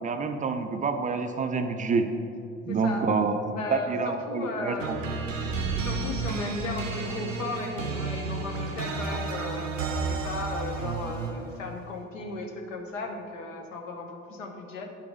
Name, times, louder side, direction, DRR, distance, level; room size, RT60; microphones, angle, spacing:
voice 1, 0.0-2.1 2.7-3.4 3.7-5.0, right 4 dB, 20° right, 6 dB, 0.3 m, -27 dB
voice 2, 2.7-3.1 3.5-5.0 5.8-9.7 10.0-14.9, left 3 dB, 80° left, 2 dB, 0.8 m, -36 dB
sound 1, 4.8-11.5, right 4 dB, 90° right, 0.5 m, -31 dB
9.0 x 4.8 x 3.4 m, 2.7 s
figure-of-eight pair, 55°, 38 cm